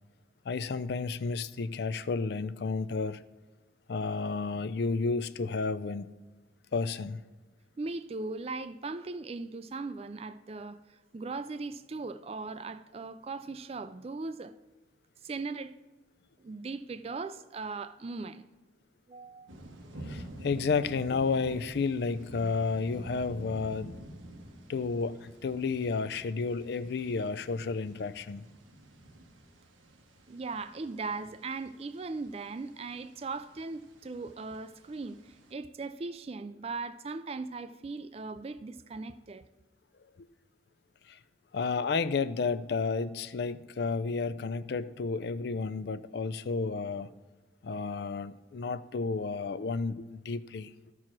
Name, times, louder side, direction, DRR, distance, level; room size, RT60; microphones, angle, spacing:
voice 1, 0.5-3.2 3.9-6.1 6.7-7.2 20.1-23.9 24.7-28.4 41.1-41.2 41.5-47.1 47.6-50.7, left 4 dB, 55° left, 0.4 m, -31 dB
voice 2, 7.8-14.5 15.2-15.7 16.4-18.5 19.1-19.5 30.3-39.4, right 3 dB, 30° right, 0.3 m, -39 dB
sound 1, 19.5-35.5, right 1 dB, 85° right, 1.2 m, -49 dB
13.0 x 4.7 x 6.0 m
head